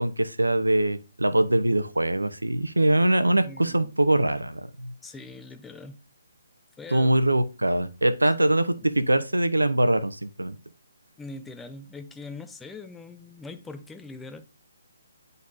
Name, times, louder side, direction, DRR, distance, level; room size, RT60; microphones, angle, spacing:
voice 1, 0.0-4.9 6.9-10.6, right 1 dB, 90° right, 0.8 m, -23 dB
voice 2, 3.4-3.9 5.0-6.0 6.8-7.2 11.2-14.5, left 3 dB, 5° left, 0.6 m, -42 dB
10.5 x 4.0 x 2.7 m
figure-of-eight pair, 140°, 0 cm